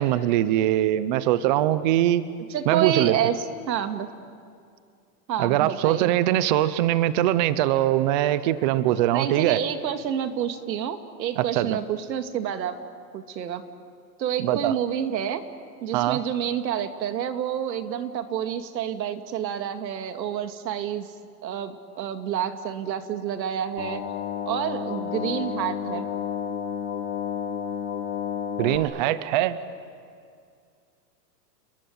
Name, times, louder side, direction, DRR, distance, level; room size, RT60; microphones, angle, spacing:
voice 1, 0.0-2.2 2.7-3.1 5.4-9.6 11.4-11.8 14.4-14.7 15.9-16.2 28.6-29.6, right 13 dB, 30° right, 15 dB, 0.6 m, -22 dB
voice 2, 2.5-4.1 5.3-6.1 9.1-12.8 13.1-13.7 14.2-15.4 15.8-21.1 21.4-24.0 24.5-26.1, right 9 dB, 90° right, 8 dB, 2.4 m, -28 dB
sound 1, 23.8-28.8, left 8 dB, 70° left, 3.1 m, -31 dB
30.0 x 21.0 x 9.4 m, 2.3 s
supercardioid pair, 165°, 50 cm